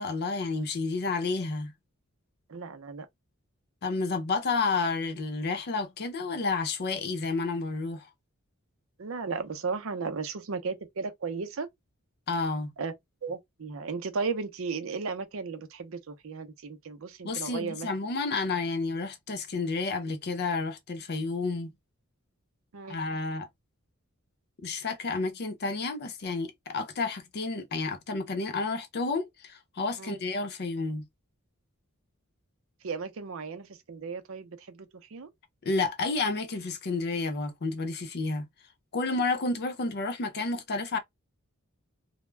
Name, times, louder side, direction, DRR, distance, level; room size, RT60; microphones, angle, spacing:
voice 1, 0.0-1.7 3.8-8.1 12.3-12.7 17.2-21.7 22.9-23.5 24.6-31.0 35.6-38.4 38.9-41.0, left 3 dB, 50° left, 0.6 m, -30 dB
voice 2, 2.5-3.1 9.0-11.7 12.8-12.9 13.2-17.9 22.7-23.0 30.0-30.2 32.8-35.3, right 4 dB, 70° right, 0.5 m, -35 dB
2.2 x 2.1 x 3.2 m
head